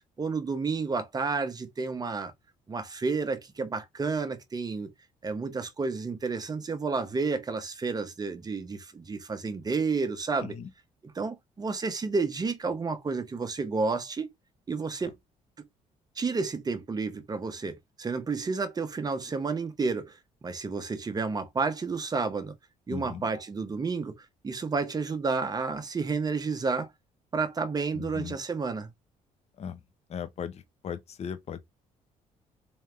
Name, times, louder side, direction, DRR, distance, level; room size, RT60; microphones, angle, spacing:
voice 1, 0.2-2.3 2.7-4.9 5.2-10.6 11.1-14.3 14.7-15.1 16.2-22.5 22.9-24.1 24.4-26.9 27.3-28.9, right 4 dB, 30° right, 1.1 m, -31 dB
voice 2, 22.9-23.2 27.9-28.4 29.6-29.8 30.1-31.6, left 7 dB, 50° left, 0.8 m, -37 dB
3.5 x 3.4 x 3.3 m
cardioid pair, 95°, 14 cm